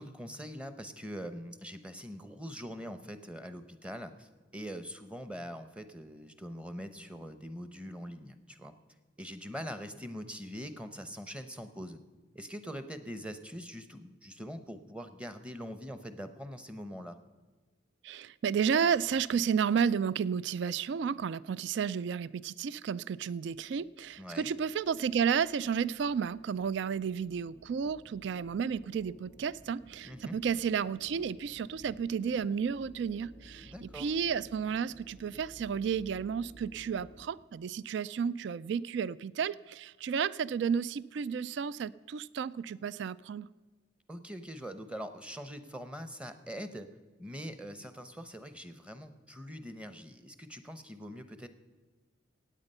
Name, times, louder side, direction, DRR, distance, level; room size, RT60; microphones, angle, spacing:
voice 1, 0.0-8.7 9.2-12.0 12.3-17.2 24.2-24.5 30.0-30.4 33.6-34.1 44.1-46.9 47.2-51.5, equal, 5° right, 10 dB, 0.7 m, -43 dB
voice 2, 18.0-43.5, right 7 dB, 65° right, 20 dB, 0.3 m, -32 dB
sound 1, 23.4-37.3, equal, 40° right, 3.6 m, -56 dB
16.5 x 9.0 x 5.5 m, 1.3 s
head